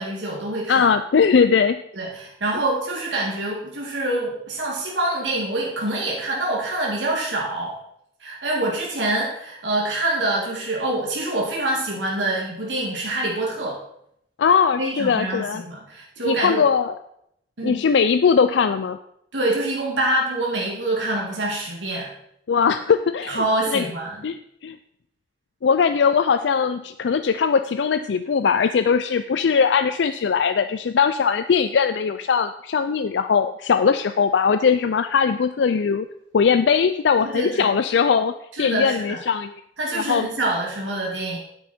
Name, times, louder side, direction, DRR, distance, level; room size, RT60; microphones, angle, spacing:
voice 1, 0.0-0.9 1.9-7.8 8.2-13.8 14.8-16.6 17.6-17.8 19.3-22.1 23.3-24.2 37.2-37.7 38.5-39.2 39.8-41.4, right 1 dB, 90° right, -3 dB, 2.2 m, -25 dB
voice 2, 0.7-1.8 14.4-15.6 16.2-17.0 17.6-19.0 22.5-23.4 23.7-23.8 24.2-24.4 24.6-24.8 25.6-36.1 36.3-38.3 38.6-39.5 39.9-40.3, left 6 dB, 75° left, 10 dB, 0.4 m, -20 dB
9.6 x 8.8 x 4.3 m, 0.74 s
head